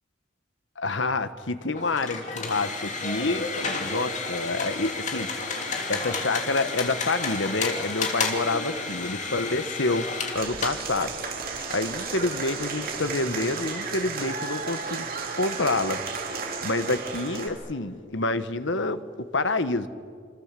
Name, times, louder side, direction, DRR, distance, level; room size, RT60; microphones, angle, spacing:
voice 1, 0.8-5.6 5.9-10.1 10.3-11.1 11.7-15.0 15.3-16.0 16.6-19.9, left 2 dB, 70° left, 11 dB, 1.3 m, -28 dB
sound 1, 1.7-13.5, left 3 dB, 35° left, 3.0 m, -32 dB
Applause / Crowd, 10.3-17.5, right 5 dB, 45° right, 3.5 m, -33 dB
28.0 x 26.5 x 7.6 m, 2.3 s
head